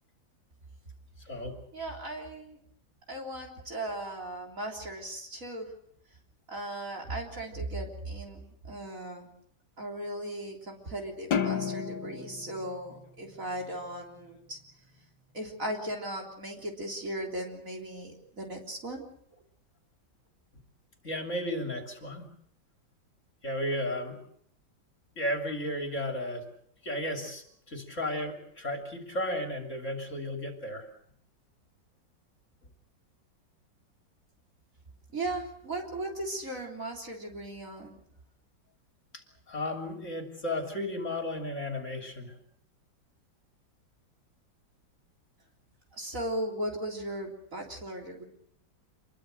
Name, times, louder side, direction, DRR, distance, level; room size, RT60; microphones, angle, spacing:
voice 1, 1.2-1.6 21.0-22.3 23.4-24.2 25.2-26.4 26.8-30.9 39.1-42.4, left 1 dB, 40° left, 3 dB, 3.4 m, -34 dB
voice 2, 1.7-2.6 3.1-5.7 6.5-9.3 9.8-14.6 15.3-19.0 35.1-38.0 45.9-48.2, right 1 dB, 40° right, 0 dB, 3.9 m, -37 dB
sound 1, 11.3-13.9, left 7 dB, 75° left, 2.1 m, -33 dB
27.0 x 22.5 x 6.5 m, 0.68 s
omnidirectional pair, 2.1 m